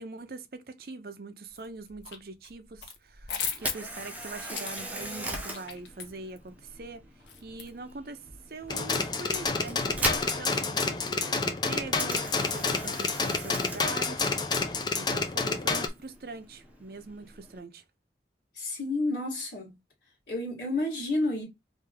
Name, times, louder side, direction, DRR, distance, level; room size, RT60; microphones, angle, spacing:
voice 1, 0.0-7.1 7.4-17.8, right 3 dB, 55° right, 0.6 m, -43 dB
sound 1, 1.6-2.2 2.4-8.0, left 6 dB, 90° left, 0.9 m, -38 dB
Camera, 3.5-17.6, right 1 dB, 10° right, 0.8 m, -40 dB
sound 2, 8.7-15.9, left 4 dB, 25° left, 0.5 m, -29 dB
voice 2, 18.5-19.8 20.3-21.4, left 2 dB, 60° left, 1.8 m, -30 dB
3.3 x 2.7 x 3.4 m
head